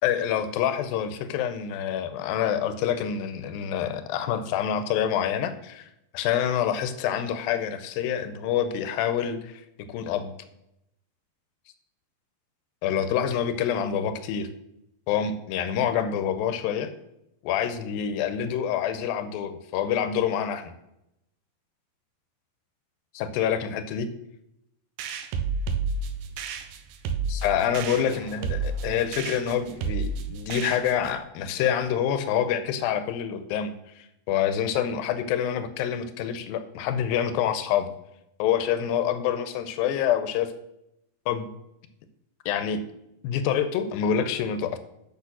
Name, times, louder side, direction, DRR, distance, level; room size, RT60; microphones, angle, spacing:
voice 1, 0.0-10.3 12.8-14.5 15.1-16.9 17.4-20.7 23.1-24.1 27.3-37.9 38.4-40.5 41.3-41.5 42.5-42.8 43.2-44.8, left 9 dB, 85° left, 10 dB, 2.5 m, -27 dB
sound 1, 25.0-31.2, right 4 dB, 75° right, 2.4 m, -31 dB
8.4 x 6.4 x 6.1 m, 0.83 s
omnidirectional pair, 4.1 m